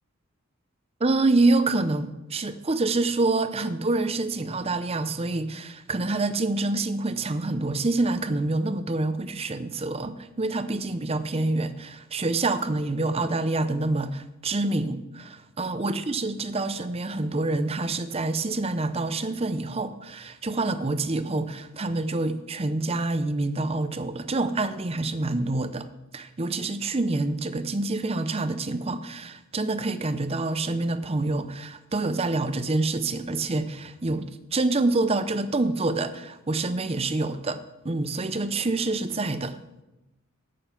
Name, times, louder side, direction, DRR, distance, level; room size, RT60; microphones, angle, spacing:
voice 1, 1.0-25.9 26.1-37.6 37.8-39.6, right 2 dB, 30° right, 12 dB, 0.6 m, -27 dB
10.0 x 8.9 x 5.8 m, 0.98 s
head